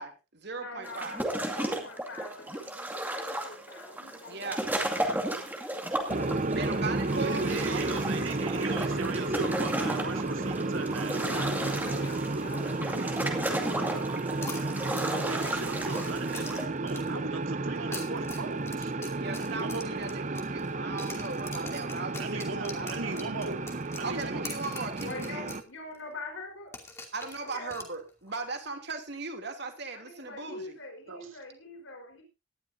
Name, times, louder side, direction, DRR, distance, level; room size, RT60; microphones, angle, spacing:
voice 1, 0.0-1.2 4.3-4.7 6.5-8.0 19.2-23.2 24.0-25.5 27.1-30.8, right 3 dB, 55° right, 5 dB, 2.9 m, -38 dB
voice 2, 0.5-5.1 11.1-14.1 25.0-26.7 27.4-27.8 29.9-32.2, left 2 dB, 75° left, 3 dB, 4.5 m, -44 dB
sound 1, 0.8-16.6, right 1 dB, 10° right, 2.2 m, -34 dB
sound 2, 6.1-25.6, right 2 dB, 35° right, 0.8 m, -32 dB
voice 3, 7.1-11.5 15.1-19.1 19.4-20.1 22.2-24.5 31.1-31.4, right 3 dB, 85° right, 6 dB, 2.4 m, -38 dB
sound 3, 14.4-17.2 17.8-20.7 21.0-25.7 25.9-26.0 26.7-28.4, left 3 dB, 15° left, 2.5 m, -44 dB
18.5 x 12.0 x 2.7 m, 0.27 s
head